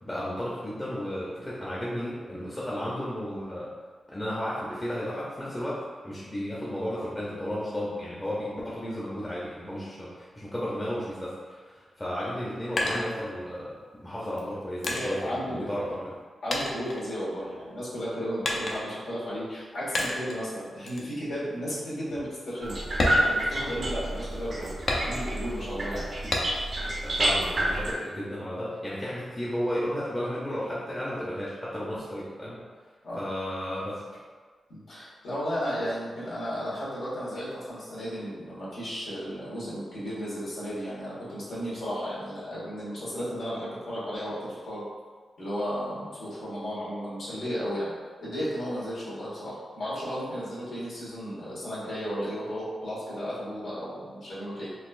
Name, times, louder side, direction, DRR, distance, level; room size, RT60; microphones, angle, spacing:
voice 1, 0.0-3.7 4.1-16.1 27.0-32.7 33.2-34.0, equal, 20° left, -8 dB, 0.7 m, -33 dB
sound 1, 12.2-13.7 14.4-16.2 16.5-17.7 18.4-19.1 20.0-20.4 20.9-21.1 21.6-21.7 22.1-22.3 22.9-24.1 24.9-25.5 26.3-26.8 27.2-28.1, left 1 dB, 60° left, 0.6 m, -31 dB
voice 2, 14.9-15.6 16.4-22.8 23.1-24.7 25.0-26.1 33.0-33.2 34.7-44.8 45.4-47.9 48.2-54.7, equal, 85° left, -9 dB, 1.3 m, -34 dB
sound 2, 22.6-27.9, right 1 dB, 50° right, 0.6 m, -29 dB
4.0 x 2.4 x 2.5 m, 1.5 s
cardioid pair, 75°, 0 cm